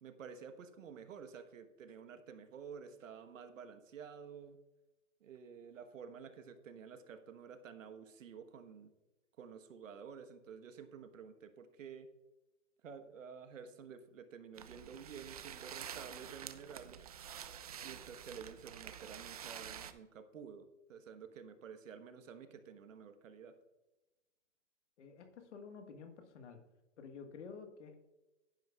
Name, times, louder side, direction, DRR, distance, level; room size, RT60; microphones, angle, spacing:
voice 1, 0.0-4.6 5.2-8.9 9.4-12.1 12.8-17.0 17.8-23.6, right 6 dB, 75° right, 8 dB, 1.3 m, -51 dB
sound 1, 14.6-19.9, right 9 dB, 30° right, 0.4 m, -48 dB
voice 2, 25.0-26.6 27.0-28.0, left 5 dB, 60° left, 7 dB, 1.6 m, -51 dB
11.0 x 10.5 x 2.4 m, 1.1 s
hypercardioid pair, 155°, 39 cm